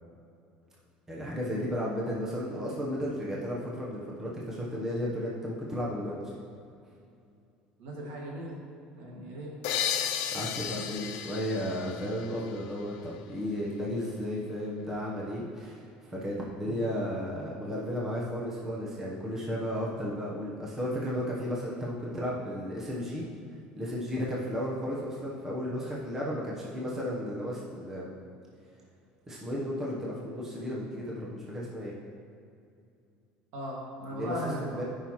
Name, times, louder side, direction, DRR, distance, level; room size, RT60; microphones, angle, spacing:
voice 1, 1.1-6.3 9.2-9.3 10.3-23.2 23.8-28.1 29.3-31.9 34.1-34.8, equal, 15° right, -4 dB, 1.0 m, -34 dB
voice 2, 7.8-8.6 8.9-9.5 16.6-16.9 33.5-34.8, equal, 70° right, -3 dB, 2.1 m, -37 dB
sound 1, 9.6-13.2, left 9 dB, 75° left, 0.6 m, -34 dB
13.5 x 5.6 x 3.1 m, 2.5 s
cardioid pair, 170°, 3 cm